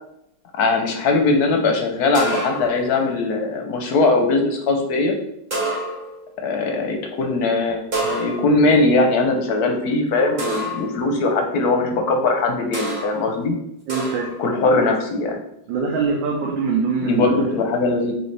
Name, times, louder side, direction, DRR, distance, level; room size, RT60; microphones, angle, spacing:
voice 1, 0.5-5.1 6.4-13.6 14.4-15.4 17.0-18.1, left 3 dB, 65° left, 3 dB, 1.0 m, -20 dB
sound 1, 2.1-2.9 5.5-6.2 7.9-8.7 10.4-11.0 12.7-13.2 13.9-14.4, right 1 dB, 35° right, 0.8 m, -27 dB
voice 2, 13.9-14.3 15.7-17.4, right 5 dB, 75° right, -1 dB, 1.4 m, -23 dB
6.2 x 2.7 x 3.2 m, 0.77 s
omnidirectional pair, 2.1 m